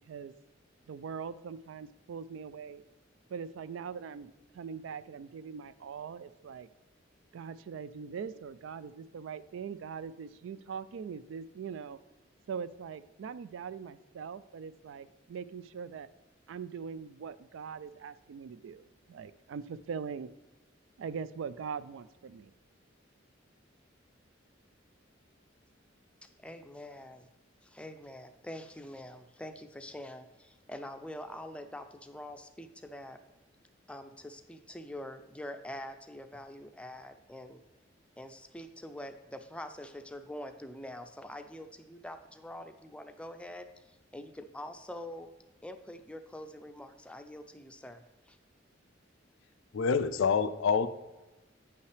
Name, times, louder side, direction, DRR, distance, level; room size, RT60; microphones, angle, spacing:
voice 1, 0.9-2.8 3.3-6.7 7.3-12.0 12.5-16.1 16.5-20.3 21.0-22.5, right 6 dB, 75° right, 16 dB, 0.3 m, -41 dB
voice 2, 26.2-27.3 27.6-33.2 33.9-37.6 38.2-45.3 45.6-48.4, left 1 dB, 5° left, 7 dB, 0.4 m, -45 dB
voice 3, 49.7-50.9, left 5 dB, 80° left, 12 dB, 0.4 m, -26 dB
9.0 x 5.6 x 3.3 m, 1.1 s
head